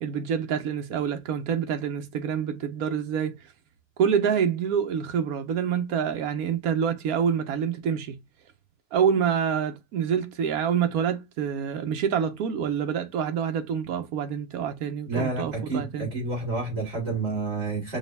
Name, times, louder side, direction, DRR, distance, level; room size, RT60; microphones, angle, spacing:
voice 1, 0.0-3.4 4.0-8.2 8.9-16.1, right 7 dB, 70° right, 1.3 m, -27 dB
voice 2, 15.1-18.0, right 3 dB, 40° right, 2.7 m, -29 dB
5.1 x 2.2 x 3.3 m
omnidirectional pair, 1.6 m